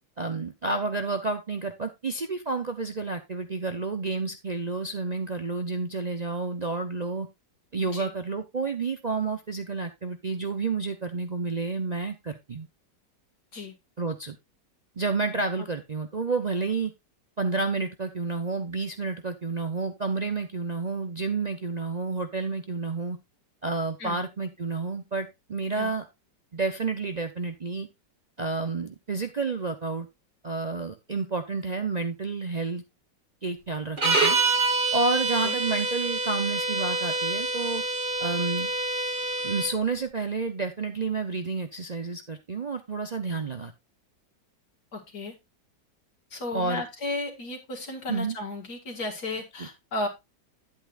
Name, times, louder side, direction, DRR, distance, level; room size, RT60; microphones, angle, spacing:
voice 1, 0.2-7.3 7.7-12.7 14.0-14.4 15.0-16.9 17.4-23.2 23.6-26.1 26.5-27.9 28.4-30.1 30.4-32.8 33.4-34.4 34.9-37.8 38.2-38.7 39.4-43.7 46.5-46.8 48.1-48.4 49.6-49.7, right 4 dB, 55° right, 0.4 m, -30 dB
sound 1, 34.0-39.7, right 3 dB, 30° right, 1.6 m, -26 dB
voice 2, 44.9-45.3 46.3-50.1, left 2 dB, 60° left, 2.6 m, -34 dB
10.5 x 8.6 x 2.4 m
omnidirectional pair, 1.9 m